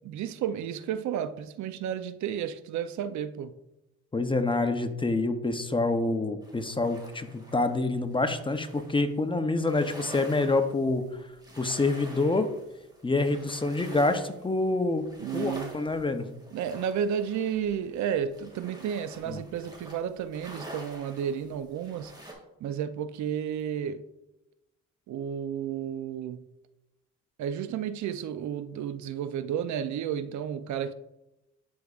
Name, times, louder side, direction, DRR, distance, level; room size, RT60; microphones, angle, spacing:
voice 1, 0.0-3.6 15.2-15.8 16.5-22.1 22.6-24.0 25.1-26.4 27.4-30.9, right 8 dB, 70° right, 0.5 m, -32 dB
voice 2, 4.1-11.0 11.6-12.5 13.0-15.0 15.3-16.3 19.3-19.4, left 2 dB, 15° left, 0.6 m, -27 dB
sound 1, 6.4-9.1 9.6-22.3, right 1 dB, 15° right, 2.1 m, -48 dB
10.5 x 4.8 x 2.4 m
cardioid pair, 90°, 30 cm